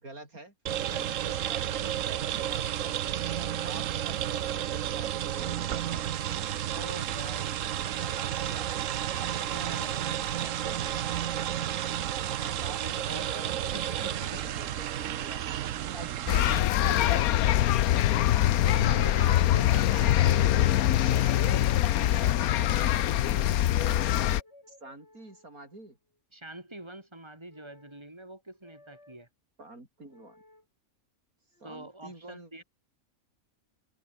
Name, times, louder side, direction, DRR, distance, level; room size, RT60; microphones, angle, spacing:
voice 1, 0.0-0.5 1.3-3.1 3.4-6.5 10.6-10.9 12.4-15.4 18.7-19.0 24.7-26.0 29.6-30.4 31.6-32.6, right 2 dB, 85° right, 6.7 m, -47 dB
sound 1, 0.7-16.6, right 11 dB, 65° right, 1.1 m, -32 dB
voice 2, 0.8-1.4 3.9-4.4 6.6-7.6 8.0-8.9 9.2-10.6 13.7-14.4 15.9-17.3 18.5-21.7 22.0-22.8 26.3-29.3 31.6-32.6, right 1 dB, 20° right, 5.1 m, -44 dB
sound 2, 16.3-24.4, left 12 dB, 90° left, 1.2 m, -23 dB
sound 3, 24.2-25.9 27.5-28.1 28.6-29.2 30.1-30.6 31.5-31.8, left 1 dB, 50° left, 6.6 m, -55 dB
open air
omnidirectional pair, 1.5 m